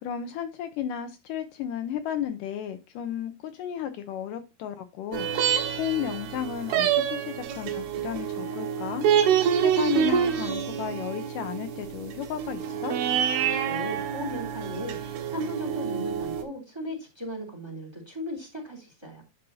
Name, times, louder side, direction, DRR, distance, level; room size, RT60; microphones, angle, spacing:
voice 1, 0.0-9.1 9.5-13.0, left 10 dB, 80° left, 2.0 m, -33 dB
sound 1, 5.1-16.4, right 8 dB, 85° right, 3.2 m, -27 dB
voice 2, 13.6-19.2, equal, 5° right, 2.6 m, -36 dB
11.0 x 5.3 x 2.8 m
omnidirectional pair, 4.4 m